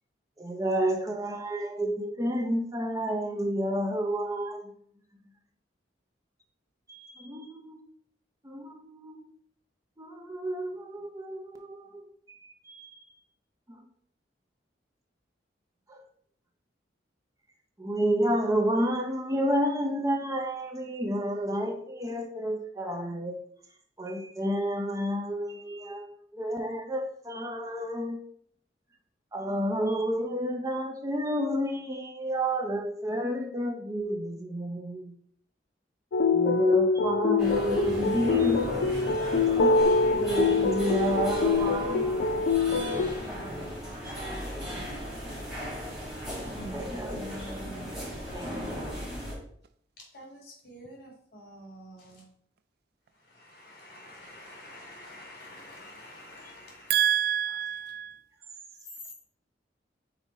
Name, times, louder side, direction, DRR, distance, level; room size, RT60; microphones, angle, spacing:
voice 1, 0.4-4.6 6.9-7.8 8.4-9.2 10.0-13.1 13.7-13.9 15.9-16.0 17.8-23.4 24.0-28.2 29.3-35.1 36.3-39.8 40.2-42.4 46.7-47.6 48.3-49.0 57.5-57.6, equal, 20° right, 0.6 m, -30 dB
sound 1, 36.1-43.1, left 4 dB, 80° left, 0.4 m, -25 dB
sound 2, 37.4-49.3, equal, 5° right, 2.1 m, -35 dB
voice 2, 50.1-52.2 53.3-56.9, left 1 dB, 55° left, 2.3 m, -48 dB
voice 3, 56.9-58.2, right 10 dB, 60° right, 0.3 m, -27 dB
5.4 x 4.2 x 4.1 m
head